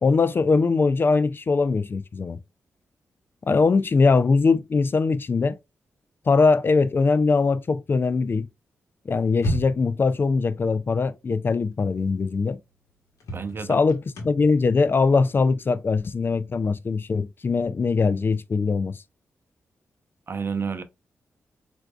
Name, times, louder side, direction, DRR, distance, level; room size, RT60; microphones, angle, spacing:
voice 1, 0.0-2.4 3.5-5.6 6.3-8.5 9.1-12.6 13.7-19.0, left 4 dB, 45° left, 0.3 m, -21 dB
sound 1, 9.3-10.1 11.8-11.9 12.4-12.5 13.2-16.8, right 1 dB, 80° left, 1.0 m, -34 dB
voice 2, 13.3-13.8 20.3-20.8, right 5 dB, 45° right, 0.6 m, -30 dB
4.5 x 2.6 x 2.3 m
cardioid pair, 55°, 5 cm